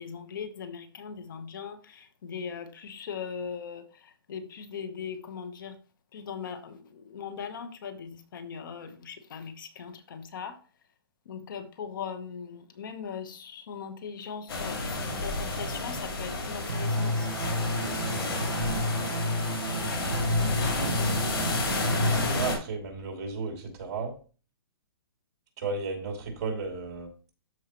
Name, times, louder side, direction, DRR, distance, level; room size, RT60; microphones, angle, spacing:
voice 1, 0.0-5.8 6.1-10.6 11.3-17.3 20.2-21.5, left 6 dB, 55° left, 10 dB, 1.1 m, -40 dB
sound 1, 14.5-22.6, left 2 dB, 75° left, 4.9 m, -31 dB
sound 2, 16.7-22.3, equal, 75° right, 1.1 m, -30 dB
voice 2, 22.4-24.1 25.6-27.1, right 4 dB, 40° right, 1 dB, 2.7 m, -34 dB
13.0 x 4.7 x 3.0 m, 0.37 s
hypercardioid pair, 165°, 13 cm